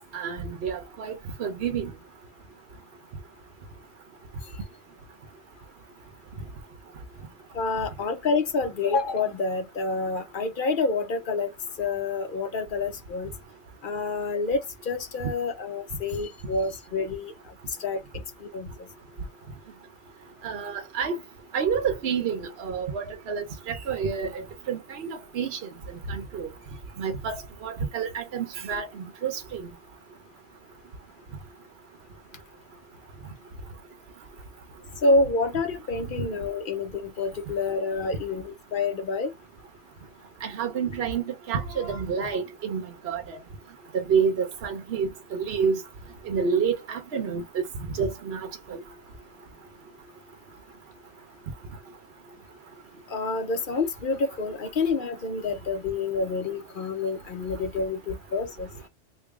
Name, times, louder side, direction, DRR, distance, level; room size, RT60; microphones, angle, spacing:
voice 1, 0.1-1.9 20.4-21.2 21.5-25.7 26.1-26.5 27.0-29.7 40.4-43.4 43.9-45.8 46.3-47.6 48.0-48.8, right 6 dB, 60° right, 1.0 m, -29 dB
voice 2, 7.5-13.3 13.8-17.3 17.8-18.0 18.4-18.7 35.0-39.3 53.1-58.7, left 3 dB, 50° left, 0.9 m, -28 dB
3.5 x 2.3 x 3.4 m
omnidirectional pair, 1.2 m